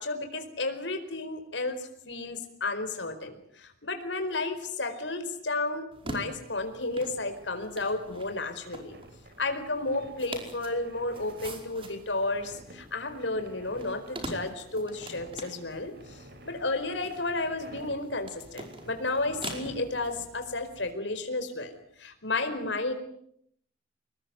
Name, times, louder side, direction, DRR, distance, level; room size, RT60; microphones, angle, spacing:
voice 1, 0.0-9.0 9.4-16.2 16.4-22.9, left 2 dB, 85° left, 8 dB, 4.8 m, -32 dB
sound 1, 5.9-20.9, right 2 dB, 30° right, 5.1 m, -45 dB
sound 2, 8.9-20.7, right 1 dB, 60° right, 4.6 m, -52 dB
26.5 x 20.5 x 9.4 m, 0.71 s
head